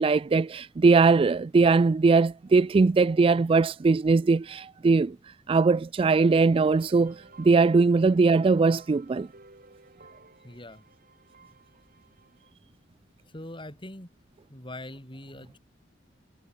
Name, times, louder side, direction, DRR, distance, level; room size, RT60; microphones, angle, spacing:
voice 1, 0.0-5.2 5.5-9.3, right 4 dB, 30° right, 0.3 m, -21 dB
sound 1, 6.0-12.5, right 3 dB, 50° right, 7.7 m, -54 dB
voice 2, 10.4-10.9 13.3-14.1 14.5-15.6, left 1 dB, 25° left, 6.1 m, -42 dB
head